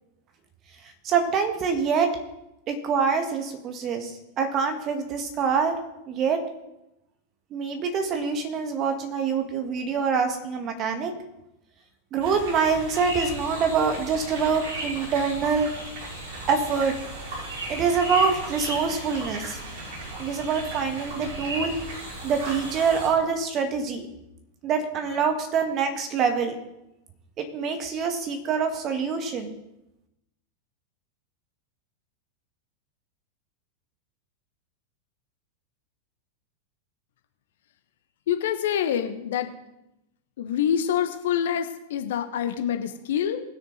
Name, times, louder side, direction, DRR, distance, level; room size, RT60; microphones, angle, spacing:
voice 1, 1.0-2.1 2.7-5.7 6.1-6.4 7.5-11.1 12.1-15.7 16.5-17.0 17.7-19.6 20.2-21.8 22.2-24.1 24.6-26.5 27.4-29.5, right 5 dB, 35° right, 5 dB, 1.9 m, -25 dB
sound 1, 12.2-23.1, right 2 dB, 50° right, 5.4 m, -38 dB
sound 2, 12.9-22.8, equal, 70° right, 2.6 m, -38 dB
voice 2, 38.3-39.5 40.4-43.4, left 9 dB, 60° left, 7 dB, 1.2 m, -26 dB
20.0 x 6.8 x 4.1 m, 0.89 s
figure-of-eight pair, 90°, 0 cm